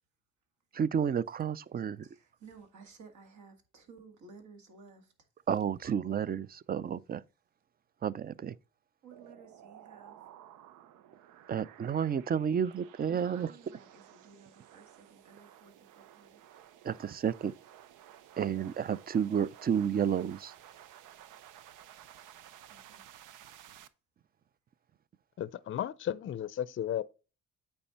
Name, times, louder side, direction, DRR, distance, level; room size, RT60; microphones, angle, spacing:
voice 1, 0.7-2.1 5.5-7.2 8.0-8.6 11.5-13.5 16.8-17.5 18.4-20.5, right 8 dB, 30° right, 0.4 m, -31 dB
voice 2, 2.0-5.1 9.0-10.2 13.1-16.4 22.7-23.0, right 5 dB, 70° right, 2.0 m, -55 dB
sound 1, 9.1-23.9, right 11 dB, 90° right, 0.6 m, -55 dB
voice 3, 25.4-27.0, left 10 dB, 40° left, 0.5 m, -34 dB
8.8 x 4.4 x 4.2 m
cardioid pair, 90°, 30 cm